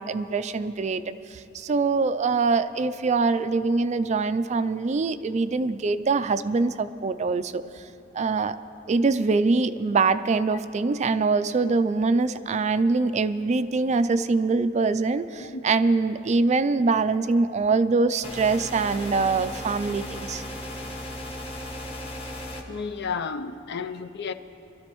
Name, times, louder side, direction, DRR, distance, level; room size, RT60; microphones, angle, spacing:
voice 1, 0.0-7.8 8.1-8.6 8.9-20.4, right 4 dB, 35° right, 0.4 m, -24 dB
sound 1, 18.2-22.6, left 1 dB, 30° left, 1.4 m, -36 dB
voice 2, 22.7-24.3, left 5 dB, 60° left, 0.5 m, -32 dB
23.5 x 13.5 x 3.1 m
head